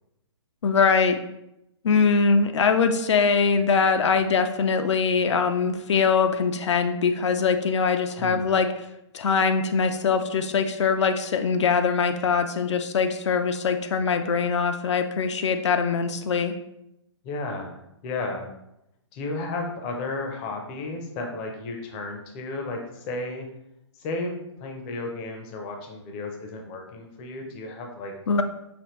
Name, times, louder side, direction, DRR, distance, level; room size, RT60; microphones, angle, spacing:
voice 1, 0.6-1.2 1.8-8.7 9.1-16.6 28.3-28.4, left 5 dB, 70° left, 8 dB, 0.4 m, -22 dB
voice 2, 8.2-8.5 17.2-18.5 19.1-23.5 24.0-28.1, left 2 dB, 20° left, 2 dB, 0.5 m, -33 dB
5.0 x 2.5 x 3.0 m, 0.83 s
hypercardioid pair, 155°, 15 cm